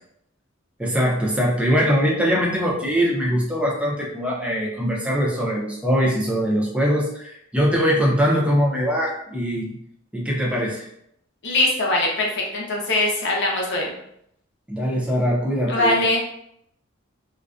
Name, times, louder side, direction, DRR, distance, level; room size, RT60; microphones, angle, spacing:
voice 1, 0.8-9.8 10.1-10.9 14.7-16.0, equal, 5° right, -3 dB, 0.5 m, -22 dB
voice 2, 11.4-14.0 15.7-16.2, left 2 dB, 60° left, -2 dB, 0.6 m, -22 dB
2.4 x 2.1 x 2.4 m, 0.73 s
head